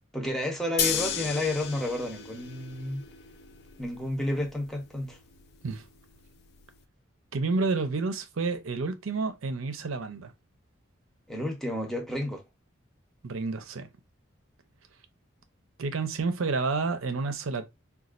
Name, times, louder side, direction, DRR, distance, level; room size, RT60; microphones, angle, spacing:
voice 1, 0.1-3.0 3.8-5.2 11.3-12.4, left 1 dB, ahead, 0.7 m, -31 dB
sound 1, 0.8-6.8, left 8 dB, 50° left, 0.4 m, -35 dB
voice 2, 7.3-10.3 13.2-13.9 15.8-17.7, right 4 dB, 80° right, 0.6 m, -30 dB
4.1 x 2.3 x 2.4 m
head